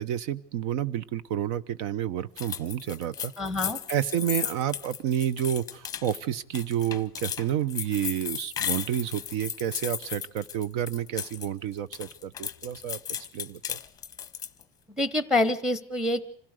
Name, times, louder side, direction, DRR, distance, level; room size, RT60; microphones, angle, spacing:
voice 1, 0.0-3.3 3.9-13.0 13.3-13.8, right 10 dB, 85° right, 18 dB, 1.0 m, -30 dB
sound 1, 2.4-11.5 11.8-14.6, left 9 dB, 20° left, 0.7 m, -35 dB
voice 2, 3.4-3.8 15.0-16.2, left 2 dB, 5° right, 14 dB, 1.0 m, -26 dB
26.5 x 16.5 x 6.6 m, 0.66 s
cardioid pair, 175°, 19 cm